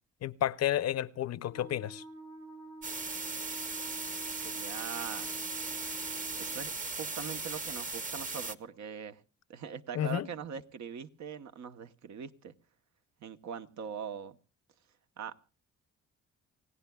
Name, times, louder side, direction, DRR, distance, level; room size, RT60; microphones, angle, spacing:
voice 1, 0.2-2.0 9.9-10.3, left 11 dB, 55° left, 0.6 m, -31 dB
Wind instrument woodwind instrument, 1.5-6.7, right 2 dB, 90° right, 7.2 m, -48 dB
sound 1, 2.8-8.5, right 3 dB, 25° right, 1.0 m, -38 dB
voice 2, 4.3-5.3 6.4-9.2 9.5-12.5 13.2-14.4 15.2-15.4, right 7 dB, 65° right, 1.0 m, -42 dB
28.5 x 16.5 x 2.3 m
cardioid pair, 90°, 30 cm